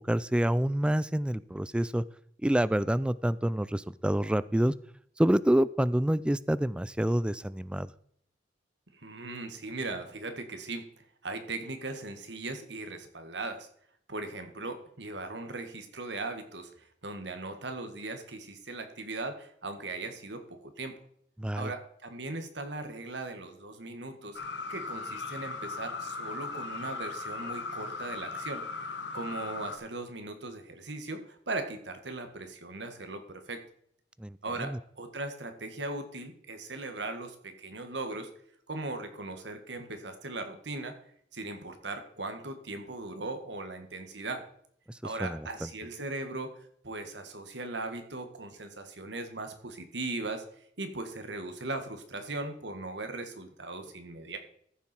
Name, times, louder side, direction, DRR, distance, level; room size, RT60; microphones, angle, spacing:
voice 1, 0.1-2.0 2.4-4.7 5.2-7.9 21.4-21.7 34.2-34.8 45.2-45.5, right 1 dB, 5° right, 18 dB, 0.3 m, -27 dB
voice 2, 8.9-10.9 11.2-13.7 14.1-20.9 21.6-24.4 24.7-28.6 29.1-33.6 34.4-38.3 38.7-41.0 41.3-44.5 45.0-50.4 50.8-54.4, right 2 dB, 70° right, 7 dB, 1.7 m, -38 dB
sound 1, 24.3-29.8, left 4 dB, 65° left, 1.2 m, -38 dB
14.5 x 7.1 x 4.5 m, 0.65 s
head